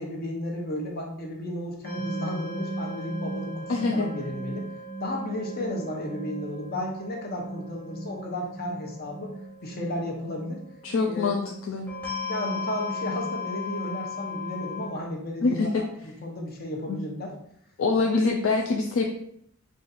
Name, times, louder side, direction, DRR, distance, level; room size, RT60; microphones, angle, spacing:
voice 1, 0.0-4.7 5.0-9.3 9.6-10.6 11.1-11.3 12.2-17.3, left 1 dB, 45° left, 1 dB, 0.8 m, -33 dB
sound 1, 1.8-14.9, left 1 dB, 5° left, 1.2 m, -36 dB
voice 2, 3.7-4.1 10.8-11.9 15.4-15.8 16.9-17.0 17.8-19.1, left 3 dB, 60° left, 2 dB, 0.4 m, -25 dB
4.0 x 2.5 x 4.0 m, 0.69 s
head